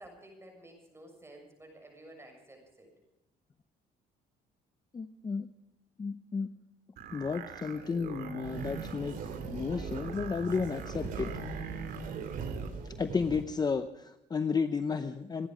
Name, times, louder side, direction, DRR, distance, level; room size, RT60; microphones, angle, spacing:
voice 1, 0.0-2.9, right 1 dB, 15° right, 3 dB, 6.9 m, -52 dB
voice 2, 4.9-5.5 6.0-6.5 7.1-9.2 9.4-11.3 13.0-15.5, left 5 dB, 25° left, 10 dB, 0.7 m, -32 dB
sound 1, 7.0-12.7, right 7 dB, 70° right, 2.7 m, -43 dB
sound 2, 8.4-13.4, right 5 dB, 55° right, 3.0 m, -41 dB
28.0 x 10.0 x 5.1 m, 0.90 s
cardioid pair, 110°, 17 cm